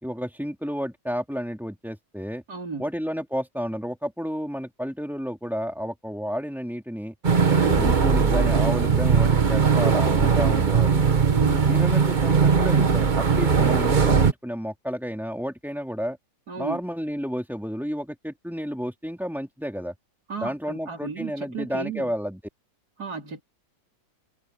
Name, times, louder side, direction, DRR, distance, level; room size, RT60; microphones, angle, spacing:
voice 1, 0.0-2.4 2.8-7.1 7.6-11.1 11.6-16.2 16.6-19.9 20.4-22.4, equal, ahead, 3.0 m, -31 dB
voice 2, 2.5-2.8 7.5-7.8 11.2-11.7 16.5-16.8 20.3-22.1 23.0-23.4, right 5 dB, 55° right, 4.4 m, -33 dB
sound 1, 7.2-14.3, right 5 dB, 30° right, 1.0 m, -19 dB
omnidirectional pair, 2.1 m